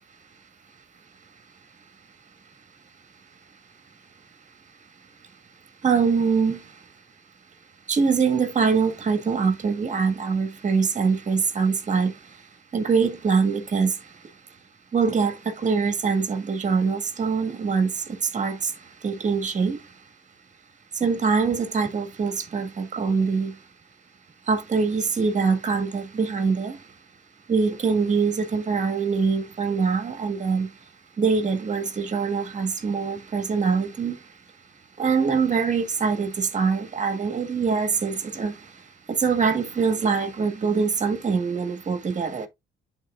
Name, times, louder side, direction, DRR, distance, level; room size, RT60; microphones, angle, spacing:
voice 1, 5.8-6.6 7.9-12.1 12.7-13.9 14.9-18.0 18.3-18.7 19.0-19.8 21.0-23.5 24.5-26.8 27.5-30.7 31.2-34.2 35.0-38.5 39.1-42.5, right 5 dB, 40° right, 1.5 m, -23 dB
10.5 x 4.0 x 2.3 m
cardioid pair, 90°, 20 cm